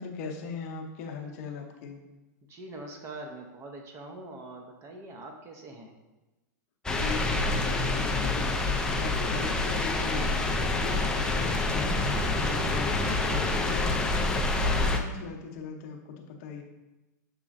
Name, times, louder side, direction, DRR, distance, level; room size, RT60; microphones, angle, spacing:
voice 1, 0.0-2.0 6.9-8.7 9.0-12.1 12.4-14.1 14.6-16.6, left 5 dB, 55° left, 2 dB, 0.7 m, -39 dB
voice 2, 2.5-6.0, right 2 dB, 30° right, 2 dB, 0.7 m, -43 dB
sound 1, 6.9-15.0, left 2 dB, 5° left, 0.4 m, -27 dB
6.5 x 3.0 x 2.5 m, 1.0 s
hypercardioid pair, 125°, 10 cm